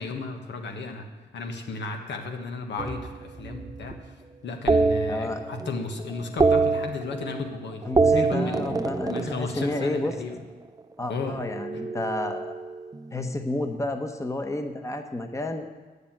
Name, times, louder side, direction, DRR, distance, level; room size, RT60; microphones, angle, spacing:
voice 1, 0.0-4.0 4.4-7.8 8.1-10.4 11.1-11.4 11.7-11.8, left 3 dB, 85° left, 4 dB, 1.4 m, -34 dB
sound 1, 2.8-4.1 4.7-5.8 6.1-7.5 7.8-10.2 11.4-13.1, right 3 dB, 20° right, 0.5 m, -26 dB
voice 2, 5.1-5.4 7.8-10.1 11.0-12.5 13.1-15.7, left 2 dB, 15° left, 6 dB, 1.0 m, -30 dB
9.5 x 6.8 x 8.9 m, 1.3 s
cardioid pair, 90°, 18 cm